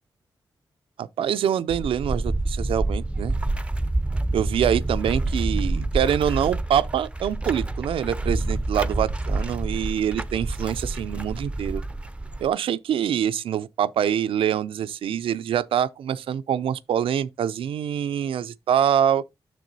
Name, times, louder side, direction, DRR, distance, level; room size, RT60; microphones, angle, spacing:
voice 1, 1.0-3.3 4.3-11.8 12.4-19.2, right 9 dB, 80° right, 0.4 m, -25 dB
sound 1, 1.7-12.5, right 2 dB, 15° right, 0.6 m, -27 dB
9.2 x 6.6 x 2.7 m
supercardioid pair, 45°, 9 cm